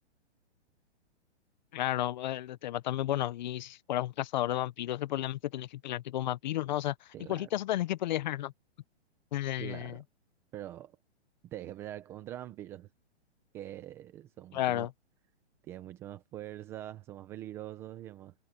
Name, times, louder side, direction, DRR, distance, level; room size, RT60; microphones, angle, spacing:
voice 1, 1.7-8.5 9.3-10.0 14.5-14.9, left 13 dB, 40° left, 0.8 m, -32 dB
voice 2, 7.1-7.5 9.6-10.0 10.5-11.0 11.4-12.9 13.5-14.9 15.6-18.3, right 13 dB, 10° right, 0.4 m, -44 dB
hypercardioid pair, 155°, 34 cm